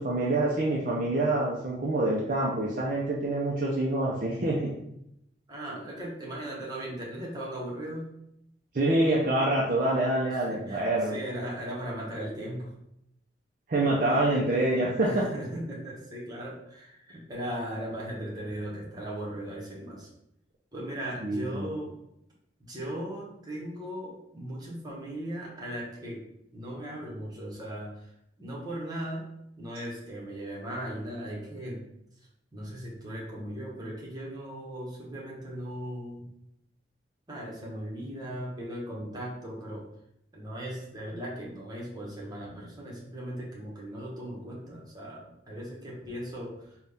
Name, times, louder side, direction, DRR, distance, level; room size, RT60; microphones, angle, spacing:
voice 1, 0.0-4.7 8.7-11.2 13.7-15.2 21.2-21.7, right 2 dB, 50° right, -3 dB, 0.5 m, -26 dB
voice 2, 5.5-8.1 10.3-12.8 14.0-14.4 15.0-20.1 20.7-21.9 22.6-26.3 26.5-28.1 28.4-29.3 29.6-31.9 32.5-36.3 37.3-39.9 40.3-46.8, right 1 dB, 20° right, -4 dB, 1.0 m, -38 dB
4.0 x 2.3 x 3.4 m, 0.78 s
head